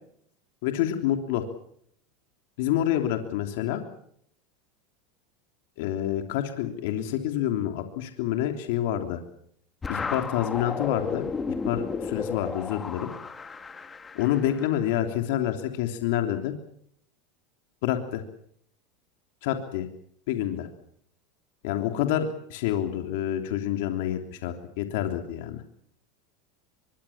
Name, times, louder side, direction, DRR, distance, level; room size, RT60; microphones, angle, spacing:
voice 1, 0.6-1.4 2.6-3.8 5.8-9.2 9.9-11.2 11.6-13.1 14.1-16.5 17.8-18.2 19.4-19.9 20.3-20.7 21.6-25.6, left 11 dB, 70° left, 6 dB, 3.3 m, -28 dB
sound 1, 9.8-14.9, left 5 dB, 20° left, 2.2 m, -33 dB
24.5 x 23.0 x 7.4 m, 0.68 s
supercardioid pair, 110°, 0 cm